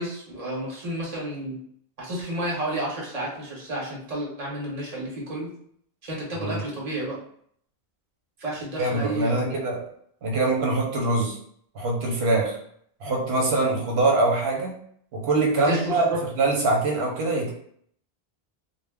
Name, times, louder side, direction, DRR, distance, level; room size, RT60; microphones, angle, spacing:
voice 1, 0.0-1.6 2.0-5.5 6.0-7.2 8.4-9.6 15.6-16.2, right 1 dB, 40° right, -4 dB, 0.9 m, -31 dB
voice 2, 8.8-9.8 10.2-11.4 11.7-12.6 13.0-14.7 15.1-16.1 16.4-17.5, right 2 dB, 85° right, -1 dB, 0.9 m, -23 dB
2.2 x 2.1 x 3.4 m, 0.65 s
omnidirectional pair, 1.1 m